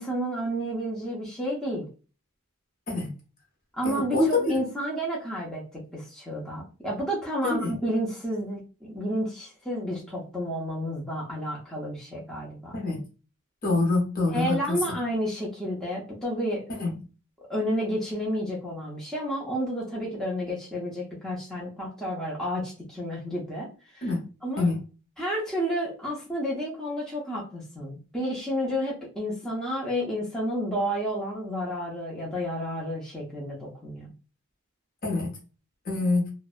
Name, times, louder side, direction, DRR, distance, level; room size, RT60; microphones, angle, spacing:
voice 1, 0.0-1.8 3.8-5.6 5.9-12.8 14.3-16.6 17.4-23.7 23.9-24.1 24.4-24.7 25.2-34.1, equal, 5° left, -6 dB, 0.5 m, -31 dB
voice 2, 3.8-4.5 7.4-7.8 12.7-13.0 13.6-14.8 16.7-17.0 24.0-24.3 24.6-24.8 35.0-35.3 35.8-36.3, left 3 dB, 40° left, 0 dB, 0.7 m, -25 dB
2.6 x 2.1 x 2.3 m, 0.34 s
head